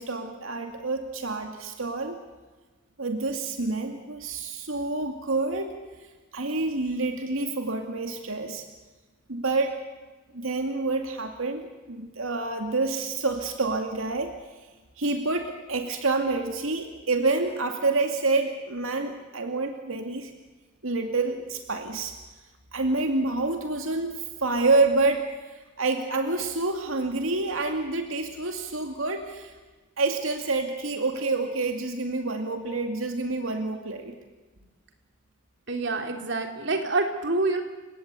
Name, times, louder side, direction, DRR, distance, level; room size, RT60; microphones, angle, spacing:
voice 1, 0.0-2.2 3.0-5.8 6.3-8.6 9.3-9.8 10.3-14.3 15.0-20.3 20.8-22.1 22.7-29.5 30.0-34.2, right 3 dB, 90° right, 4 dB, 2.4 m, -28 dB
voice 2, 35.7-37.6, right 3 dB, 60° right, 4 dB, 3.3 m, -27 dB
30.0 x 17.5 x 8.3 m, 1.3 s
head